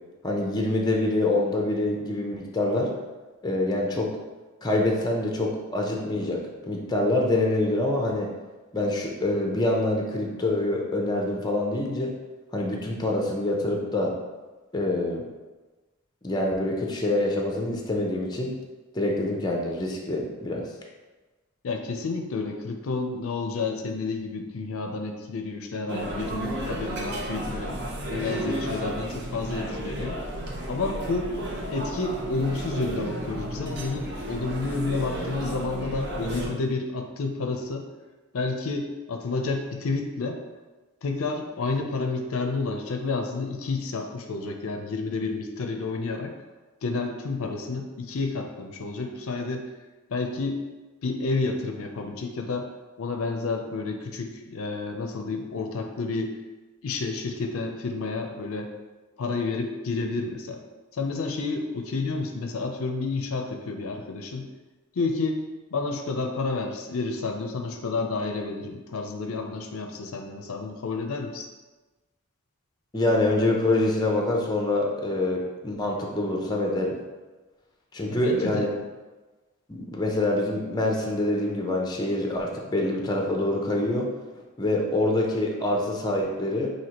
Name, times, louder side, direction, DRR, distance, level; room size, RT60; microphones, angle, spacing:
voice 1, 0.2-2.9 3.4-4.1 4.6-8.3 8.7-12.1 12.5-14.1 14.7-15.2 16.2-18.5 18.9-20.6 72.9-77.0 77.9-78.7 79.7-84.1 84.6-86.7, left 1 dB, 20° left, 0 dB, 0.5 m, -25 dB
voice 2, 21.6-30.2 30.7-31.3 31.7-37.9 38.3-40.4 41.0-46.3 46.8-49.7 50.1-50.6 51.0-52.7 53.0-56.4 56.8-58.7 59.2-60.6 60.9-64.5 64.9-65.4 65.7-71.5 78.1-78.7, left 3 dB, 70° left, 4 dB, 0.5 m, -30 dB
sound 1, 25.9-36.5, right 1 dB, 50° right, 0.6 m, -33 dB
5.8 x 2.8 x 2.9 m, 1.2 s
head